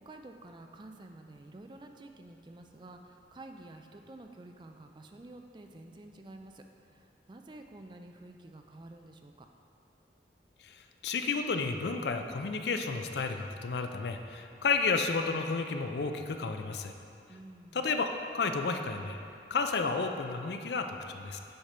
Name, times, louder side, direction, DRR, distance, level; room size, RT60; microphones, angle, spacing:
voice 1, 0.0-9.5 17.3-17.9, right 2 dB, 25° right, 5 dB, 0.3 m, -50 dB
voice 2, 10.6-16.9 17.7-18.1 18.3-19.2 19.5-21.4, left 4 dB, 70° left, 6 dB, 0.5 m, -32 dB
7.9 x 5.1 x 4.3 m, 2.6 s
head